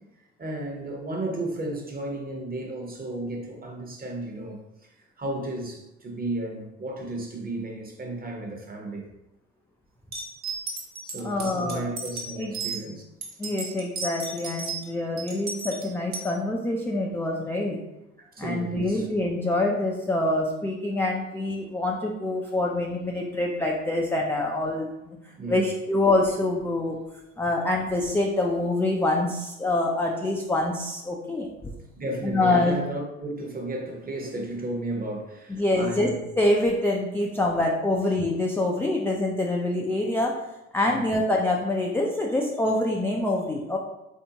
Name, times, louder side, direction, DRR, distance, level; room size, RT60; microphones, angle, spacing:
voice 1, 0.4-4.9 5.2-9.1 11.0-13.0 18.2-19.1 25.4-25.7 32.0-36.2 40.9-41.1, right 2 dB, 25° right, 1 dB, 0.9 m, -33 dB
sound 1, 10.1-12.8 13.2-14.9 15.2-16.3, right 4 dB, 50° right, 1.1 m, -34 dB
voice 2, 11.2-11.9 12.4-12.5 13.4-17.8 18.4-25.2 25.5-27.0 27.4-31.5 32.2-32.7 35.5-36.1 36.4-40.4 40.7-43.8, left 2 dB, 5° left, -1 dB, 0.3 m, -25 dB
3.3 x 2.7 x 2.8 m, 0.92 s
hypercardioid pair, 70°, 35 cm